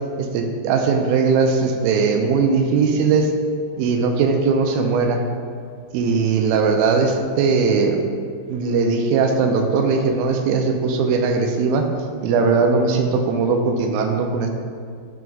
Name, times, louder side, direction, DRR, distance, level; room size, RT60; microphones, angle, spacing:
voice 1, 0.2-3.3 3.8-5.2 5.9-8.0 8.5-11.8 12.2-14.5, right 4 dB, 90° right, 4 dB, 2.5 m, -19 dB
11.0 x 4.6 x 2.4 m, 2.1 s
omnidirectional pair, 4.2 m